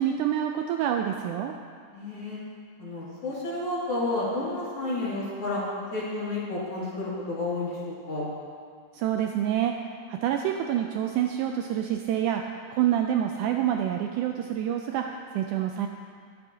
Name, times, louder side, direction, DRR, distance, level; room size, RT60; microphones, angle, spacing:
voice 1, 0.0-1.5 8.9-9.7 10.1-15.9, right 10 dB, 80° right, 3 dB, 1.8 m, -27 dB
voice 2, 1.9-2.4 2.8-5.6 5.9-8.3, left 2 dB, 45° left, -8 dB, 3.1 m, -31 dB
22.0 x 8.1 x 2.8 m, 2.2 s
omnidirectional pair, 3.9 m